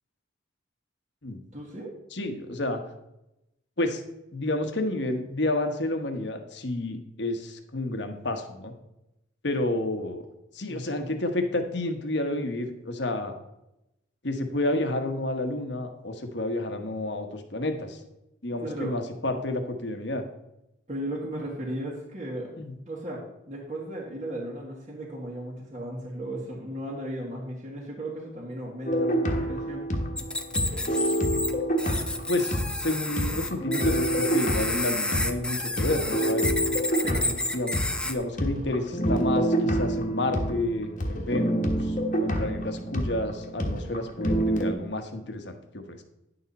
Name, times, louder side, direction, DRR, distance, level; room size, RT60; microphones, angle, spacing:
voice 1, 1.5-1.9 10.7-11.1 18.6-18.9 20.9-22.5 22.9-29.9 37.0-37.4, right 1 dB, 35° right, -5 dB, 1.7 m, -36 dB
voice 2, 2.1-2.8 3.8-4.0 4.3-8.7 9.4-10.3 10.5-13.3 14.2-18.0 18.4-20.2 22.6-22.7 32.3-36.5 37.5-37.8 38.0-46.0, left 1 dB, 60° left, 6 dB, 1.2 m, -30 dB
sound 1, 28.9-32.9 33.2-44.7, right 1 dB, 40° left, 1.3 m, -27 dB
sound 2, 30.2-31.5 31.8-38.1, left 2 dB, 5° left, 0.5 m, -30 dB
10.0 x 6.9 x 4.1 m, 0.88 s
head